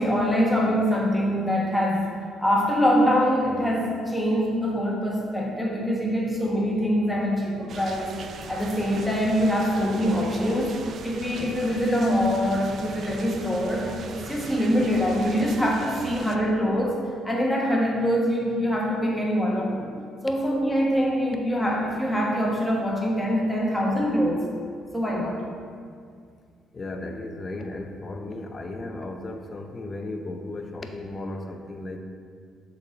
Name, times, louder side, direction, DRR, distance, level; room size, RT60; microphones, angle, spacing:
voice 1, 0.0-2.1 2.4-10.8 11.0-17.0 17.2-19.9 20.2-24.4 24.9-25.4, equal, 5° left, -3 dB, 1.3 m, -24 dB
sound 1, 7.7-16.4, right 5 dB, 60° right, 0.4 m, -39 dB
voice 2, 26.7-32.0, left 2 dB, 35° left, 5 dB, 0.6 m, -35 dB
7.0 x 4.0 x 4.1 m, 2.1 s
cardioid pair, 85°, 0 cm